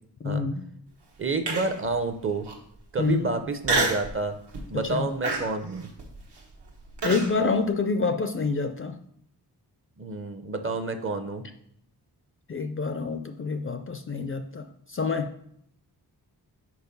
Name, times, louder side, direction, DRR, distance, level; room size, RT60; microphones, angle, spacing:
voice 1, 0.2-0.6 3.0-3.3 4.8-5.1 7.0-9.0 12.5-15.3, left 4 dB, 35° left, 8 dB, 0.4 m, -27 dB
voice 2, 1.2-2.5 2.9-4.4 4.7-5.9 10.0-11.4, right 3 dB, 30° right, 8 dB, 0.6 m, -29 dB
Human voice, 1.5-1.9 2.4-2.5 3.6-4.1 4.5-4.8 5.2-7.3, right 3 dB, 80° right, 1.3 m, -27 dB
4.8 x 4.7 x 5.2 m, 0.69 s
wide cardioid pair, 115°, 41 cm